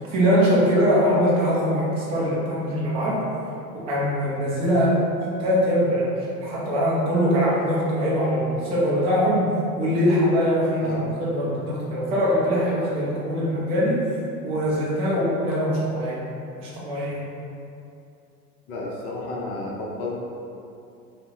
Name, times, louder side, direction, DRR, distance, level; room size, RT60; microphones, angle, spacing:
voice 1, 0.0-3.2 3.7-9.5 9.8-14.0 14.4-16.2 16.6-17.2, equal, 15° right, -7 dB, 0.3 m, -22 dB
voice 2, 18.7-20.2, left 2 dB, 40° left, -3 dB, 0.6 m, -32 dB
3.4 x 2.1 x 2.8 m, 2.6 s
figure-of-eight pair, 85°, 49 cm